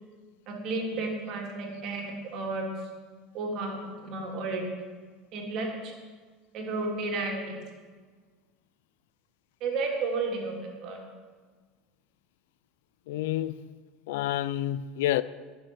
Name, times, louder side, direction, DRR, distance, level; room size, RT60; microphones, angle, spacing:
voice 1, 0.5-2.6 3.3-4.6 5.3-5.9 6.5-7.6 9.6-11.0, right 3 dB, 55° right, 3.5 m, -32 dB
voice 2, 13.1-13.6 14.1-15.2, left 13 dB, 75° left, 0.5 m, -28 dB
12.0 x 6.9 x 9.4 m
hypercardioid pair, 85°, 0 cm